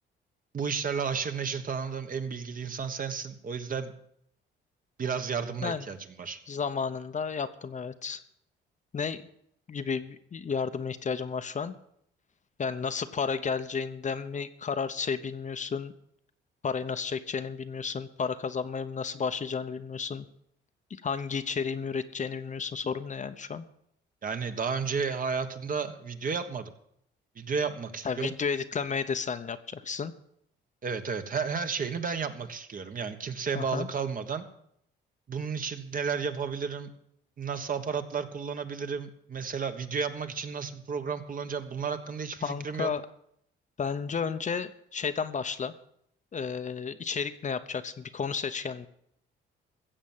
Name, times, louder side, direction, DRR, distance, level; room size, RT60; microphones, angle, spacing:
voice 1, 0.5-3.9 5.0-6.4 24.2-26.7 27.3-28.3 30.8-34.4 35.3-36.9 37.4-42.9, right 5 dB, 45° right, 8 dB, 1.4 m, -32 dB
voice 2, 6.5-8.2 8.9-9.3 9.7-11.7 12.6-15.9 16.6-20.3 20.9-23.6 28.0-30.1 33.5-33.9 42.4-43.0 43.8-45.7 46.3-48.9, left 5 dB, 40° left, 10 dB, 0.9 m, -32 dB
15.5 x 7.3 x 7.3 m, 0.71 s
cardioid pair, 90°, 20 cm